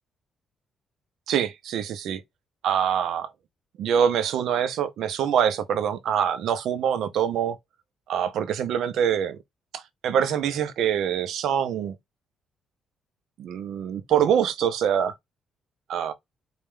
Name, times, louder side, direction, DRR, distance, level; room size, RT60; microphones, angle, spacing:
voice 1, 1.3-2.2 2.6-3.3 3.8-7.6 8.1-9.4 9.7-12.0 13.4-15.1 15.9-16.1, right 8 dB, 75° right, 0.7 m, -24 dB
4.3 x 2.4 x 3.6 m
cardioid pair, 110°, 0 cm